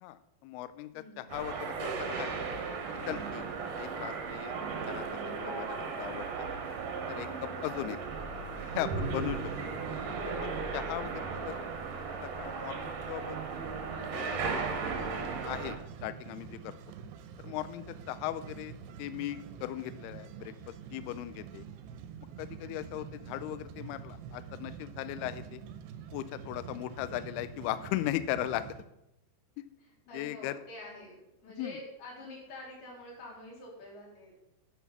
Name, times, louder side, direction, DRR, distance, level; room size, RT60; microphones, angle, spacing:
voice 1, 0.0-2.4 3.1-3.4 3.8-4.6 4.9-6.3 7.1-8.0 8.8-9.5 10.2-11.5 12.2-13.4 14.1-14.6 15.5-16.8 17.4-18.7 19.0-20.5 20.9-21.7 22.4-25.6 26.1-28.7 30.1-30.6 31.6-31.7, left 14 dB, 90° left, 13 dB, 2.2 m, -38 dB
voice 2, 0.9-1.2 11.2-11.6 29.8-34.3, left 2 dB, 60° left, -4 dB, 5.1 m, -47 dB
sound 1, 1.3-15.8, right 5 dB, 65° right, 2.1 m, -36 dB
sound 2, 14.6-28.8, right 7 dB, 80° right, 2.8 m, -46 dB
11.0 x 6.0 x 5.9 m, 0.84 s
omnidirectional pair, 5.1 m